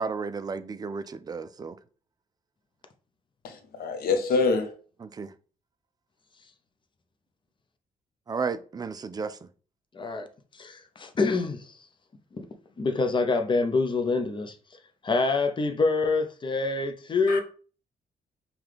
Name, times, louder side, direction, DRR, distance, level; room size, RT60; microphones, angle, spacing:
voice 1, 0.0-1.8 5.0-5.3 8.3-9.5, right 5 dB, 25° right, 0.3 m, -33 dB
voice 2, 3.4-4.7 17.3-17.4, left 4 dB, 80° left, 0.9 m, -26 dB
voice 3, 9.9-10.3 10.5-11.8 12.3-12.5 12.8-14.6 15.0-17.4, left 3 dB, 30° left, 0.7 m, -26 dB
5.6 x 2.3 x 3.3 m
cardioid pair, 105°, 15 cm